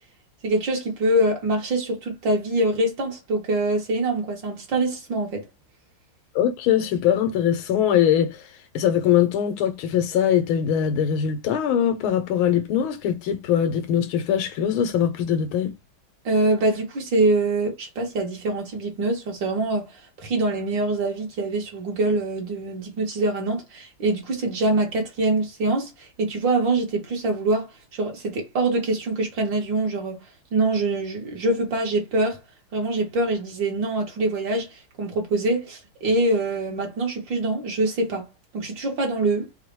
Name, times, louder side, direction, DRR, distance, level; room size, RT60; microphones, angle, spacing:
voice 1, 0.4-5.4 16.2-30.2 30.5-32.4 32.7-38.3 38.5-39.5, right 2 dB, 60° right, 2.3 m, -24 dB
voice 2, 6.4-8.4 8.8-15.7, left 9 dB, 80° left, 1.7 m, -22 dB
4.8 x 2.4 x 4.6 m
omnidirectional pair, 2.3 m